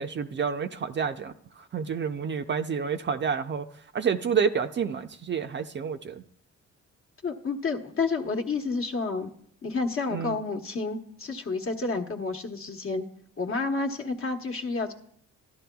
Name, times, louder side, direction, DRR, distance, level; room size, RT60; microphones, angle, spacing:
voice 1, 0.0-1.3 1.7-3.7 3.9-6.2 10.1-10.4, right 6 dB, 40° right, 8 dB, 0.5 m, -29 dB
voice 2, 7.2-9.3 9.6-13.0 13.4-14.9, left 4 dB, 45° left, 2 dB, 1.1 m, -30 dB
13.5 x 11.0 x 2.3 m, 0.66 s
cardioid pair, 90°, 30 cm